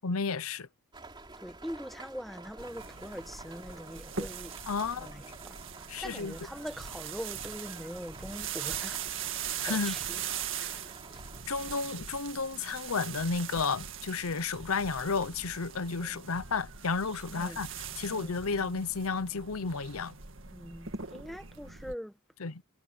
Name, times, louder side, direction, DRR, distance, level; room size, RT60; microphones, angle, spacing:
voice 1, 0.0-0.7 4.7-5.1 5.9-6.3 9.6-9.9 10.6-10.7 11.5-17.7 18.0-20.1 22.4-22.6, left 4 dB, 75° left, 0.8 m, -32 dB
sound 1, 0.9-11.4, right 2 dB, 20° right, 3.4 m, -50 dB
voice 2, 1.4-4.6 5.0-9.3 9.6-10.2 10.5-11.2 16.0-16.2 17.3-17.6 18.1-18.4 20.5-22.2, equal, ahead, 1.2 m, -43 dB
sound 2, 2.6-22.0, right 8 dB, 60° right, 2.0 m, -41 dB
head